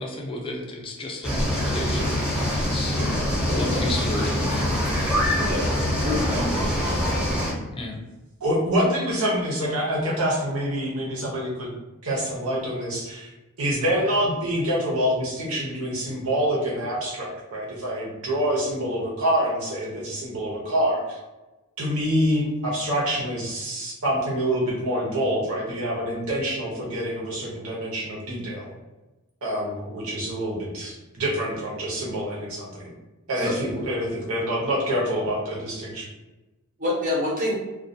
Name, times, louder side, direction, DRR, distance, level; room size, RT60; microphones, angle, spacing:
voice 1, 0.0-2.1 2.3-4.7 7.7-8.0, left 1 dB, 25° left, 1 dB, 0.3 m, -33 dB
sound 1, 1.2-7.5, left 1 dB, 5° right, 0.8 m, -24 dB
voice 2, 6.0-7.1 33.4-33.5 36.8-37.6, left 2 dB, 35° right, -4 dB, 0.6 m, -27 dB
voice 3, 8.4-11.7 12.0-13.3 13.6-21.2 21.8-28.7 29.4-32.9 33.3-36.0, equal, 70° right, -3 dB, 0.8 m, -26 dB
2.3 x 2.3 x 2.6 m, 1.1 s
head